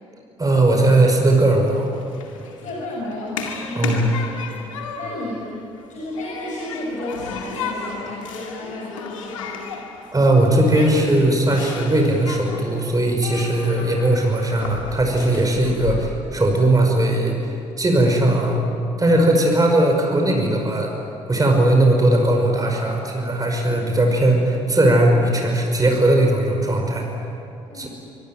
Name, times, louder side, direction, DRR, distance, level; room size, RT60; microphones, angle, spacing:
voice 1, 0.4-1.9 3.8-4.1 10.1-17.5 17.8-18.7 19.0-20.9 21.3-27.1 27.7-27.9, right 1 dB, 20° right, 2 dB, 5.4 m, -18 dB
Human group actions, 1.6-15.9, left 5 dB, 80° left, 2.2 m, -34 dB
voice 2, 2.5-4.2 4.7-5.5 5.9-9.6 23.8-24.1 27.7-27.9, left 1 dB, 50° left, -3 dB, 6.6 m, -33 dB
24.5 x 23.0 x 9.2 m, 2.6 s
figure-of-eight pair, 45°, 16 cm